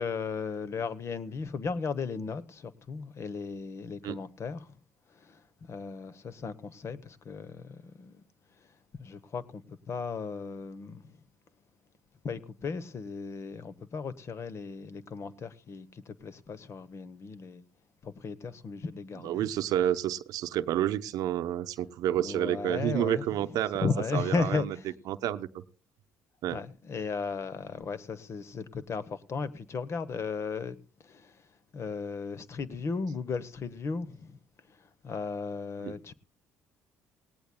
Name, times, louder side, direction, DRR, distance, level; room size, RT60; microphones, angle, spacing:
voice 1, 0.0-4.8 5.1-8.2 8.9-11.2 12.2-17.6 18.0-19.5 22.2-24.9 26.5-30.8 31.0-31.4 31.7-34.4 34.7-36.1, left 5 dB, 45° left, 1.0 m, -36 dB
voice 2, 19.2-24.7 25.1-25.6 26.4-26.6 35.8-35.9, right 12 dB, 70° right, 0.7 m, -30 dB
18.5 x 17.5 x 2.2 m
supercardioid pair, 70°, 6 cm